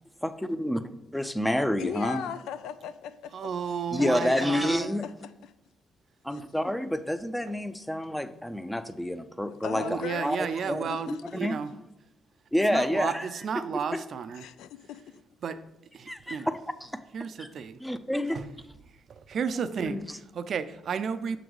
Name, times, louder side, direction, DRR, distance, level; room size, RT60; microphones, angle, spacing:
voice 1, 0.2-0.8 1.1-2.2 3.9-5.1 6.2-10.4 10.7-11.6 12.5-13.2 13.9-14.0 16.1-17.0 17.4-17.5 17.9-18.4 19.7-20.0, left 1 dB, 5° left, 11 dB, 0.5 m, -29 dB
voice 2, 1.8-3.5 4.0-4.5 5.0-5.1 5.4-5.5 6.3-6.4 9.6-11.2 14.4-15.2, left 9 dB, 85° left, 12 dB, 0.4 m, -38 dB
voice 3, 3.3-5.0 7.5-7.6 9.8-11.7 12.7-14.5 15.4-15.6 15.9-16.5 17.1-17.7 18.3-18.5 19.3-21.4, right 6 dB, 60° right, 12 dB, 0.4 m, -32 dB
7.0 x 3.9 x 4.6 m, 0.88 s
cardioid pair, 90°, 0 cm